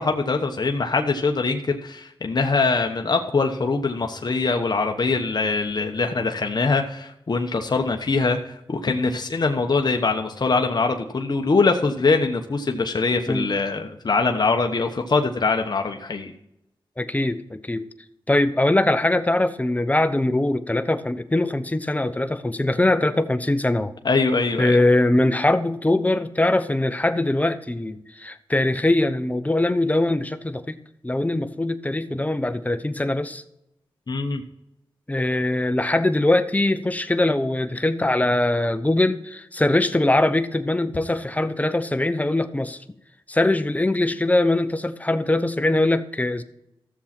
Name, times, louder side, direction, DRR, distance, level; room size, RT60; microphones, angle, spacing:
voice 1, 0.0-16.3 24.0-24.8 34.1-34.4, left 3 dB, 50° left, 3 dB, 1.1 m, -23 dB
voice 2, 17.0-17.9 18.3-23.9 24.6-33.4 35.1-42.8 43.3-46.4, left 2 dB, 15° left, 11 dB, 0.9 m, -22 dB
14.0 x 7.2 x 4.3 m, 0.84 s
cardioid pair, 60°, 9 cm